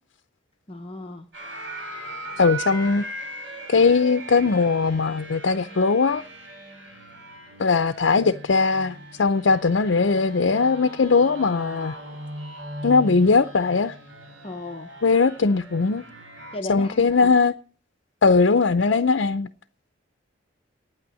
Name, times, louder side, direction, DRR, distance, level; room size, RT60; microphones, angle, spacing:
voice 1, 0.7-1.3 14.4-14.9 16.5-17.3, left 1 dB, 30° left, 0.9 m, -35 dB
sound 1, 1.3-16.6, right 1 dB, 75° right, 6.5 m, -39 dB
voice 2, 2.4-3.0 3.7-6.2 7.6-11.9 12.8-13.9 15.0-16.0 16.7-17.5 18.2-19.5, left 4 dB, 70° left, 0.6 m, -20 dB
9.2 x 8.9 x 9.6 m
head